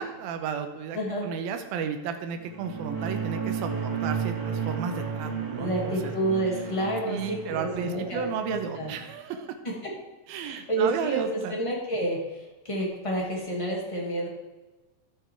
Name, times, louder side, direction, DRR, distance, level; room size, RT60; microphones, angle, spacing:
voice 1, 0.0-1.0 1.2-6.1 7.0-9.5 10.3-11.6, right 7 dB, 80° right, 6 dB, 2.7 m, -33 dB
voice 2, 0.9-1.3 5.6-8.9 9.6-9.9 10.4-14.3, right 1 dB, 10° left, -3 dB, 1.7 m, -29 dB
sound 1, 2.4-9.1, right 6 dB, 55° right, 1.0 m, -33 dB
13.0 x 6.2 x 4.7 m, 1.1 s
omnidirectional pair, 4.2 m